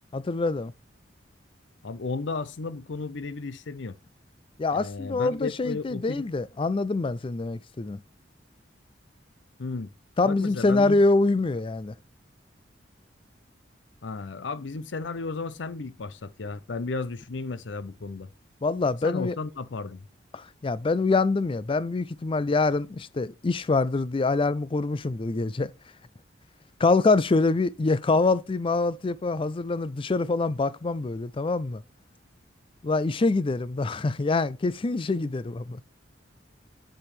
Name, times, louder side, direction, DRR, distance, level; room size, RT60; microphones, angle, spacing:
voice 1, 0.1-0.7 4.6-8.0 10.2-11.9 18.6-19.4 20.3-25.7 26.8-31.8 32.8-35.8, left 3 dB, 30° left, 0.4 m, -25 dB
voice 2, 1.8-4.0 4.7-6.2 9.6-9.9 10.2-11.0 14.0-18.3 19.0-20.0, left 3 dB, 75° left, 0.6 m, -34 dB
7.9 x 7.0 x 3.2 m
head